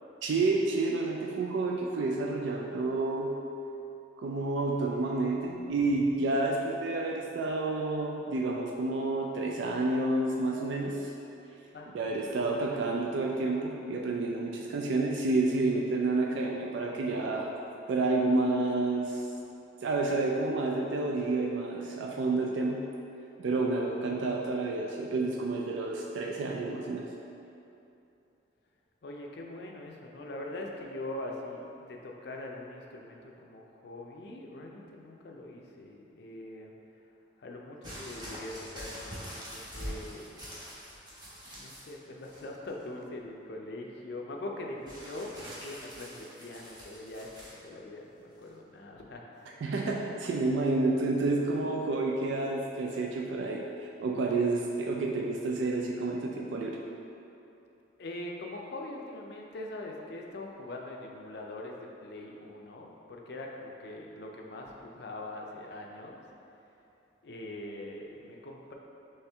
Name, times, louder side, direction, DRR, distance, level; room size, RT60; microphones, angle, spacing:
voice 1, 0.2-3.4 4.2-11.1 11.9-17.5 17.9-19.3 19.8-22.8 23.4-27.1 49.6-56.8, right 2 dB, 70° right, 0 dB, 0.3 m, -29 dB
voice 2, 11.7-12.1 29.0-36.7 37.4-40.4 41.5-49.6 58.0-66.3 67.2-68.7, left 1 dB, 60° left, 0 dB, 0.5 m, -42 dB
sound 1, 37.8-41.9 42.2-42.8 44.9-47.6 48.4-48.5, equal, 20° right, 0.9 m, -44 dB
4.3 x 3.2 x 3.4 m, 2.8 s
head